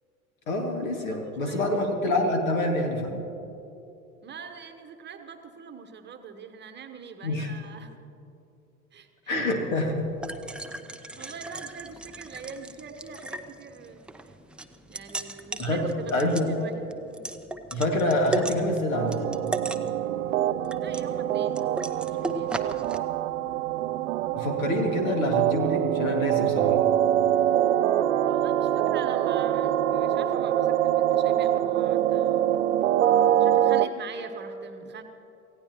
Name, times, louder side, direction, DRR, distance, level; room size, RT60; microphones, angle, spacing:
voice 1, 0.5-3.2 7.2-7.5 9.3-10.1 15.6-15.8 16.1-16.5 17.7-19.1 24.3-26.8, left 1 dB, 65° left, 3 dB, 2.3 m, -26 dB
voice 2, 1.1-1.8 4.2-8.0 8.9-9.3 10.6-14.0 14.9-17.3 20.8-21.6 22.2-22.5 28.3-32.5 33.4-35.0, right 6 dB, 25° right, 7 dB, 1.1 m, -43 dB
sound 1, 9.6-23.0, right 2 dB, 5° right, 0.4 m, -37 dB
sound 2, 18.9-33.9, right 11 dB, 60° right, 0.6 m, -24 dB
27.0 x 16.0 x 3.0 m, 2.9 s
figure-of-eight pair, 75°, 43 cm